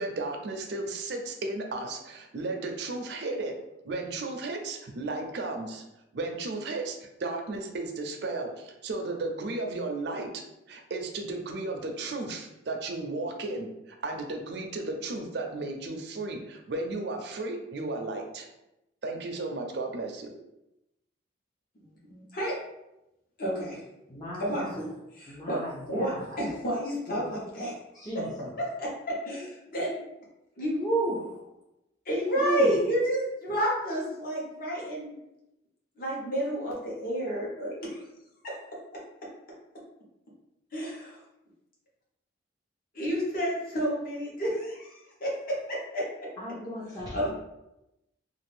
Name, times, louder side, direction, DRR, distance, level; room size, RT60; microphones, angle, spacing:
voice 1, 0.0-3.5 3.8-5.8 6.1-10.3 10.7-18.5 19.0-20.3, right 2 dB, 60° right, 3 dB, 0.5 m, -34 dB
voice 2, 21.8-22.6 23.4-23.8 24.4-24.9 25.1-25.6 25.9-28.1 28.6-30.1 30.6-30.8 32.1-35.2 36.0-38.0 38.4-38.6 40.7-41.2 42.9-46.1 47.1-47.3, equal, 50° left, -5 dB, 1.0 m, -30 dB
voice 3, 24.1-24.8 25.3-26.6 27.1-27.2 27.9-28.5 30.8-31.2 32.3-32.7 46.4-47.3, right 1 dB, 20° left, -8 dB, 0.6 m, -34 dB
2.5 x 2.5 x 3.3 m, 0.90 s
head